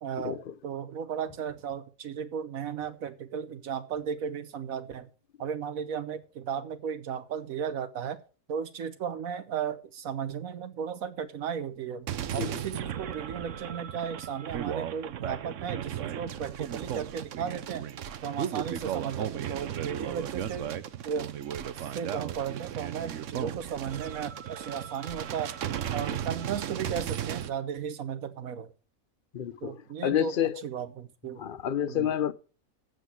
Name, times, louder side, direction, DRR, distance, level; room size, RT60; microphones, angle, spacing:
voice 1, 0.0-5.1 5.4-8.2 8.5-17.9 18.2-20.7 21.0-21.3 21.7-25.5 25.9-28.7 29.6-31.4 31.9-32.1, right 7 dB, 85° right, 1.3 m, -35 dB
sound 1, 12.1-27.5, right 10 dB, 65° right, 1.0 m, -35 dB
voice 2, 29.3-29.8 30.0-30.6 31.4-32.3, left 10 dB, 50° left, 0.8 m, -28 dB
8.1 x 7.8 x 8.1 m
omnidirectional pair, 1.4 m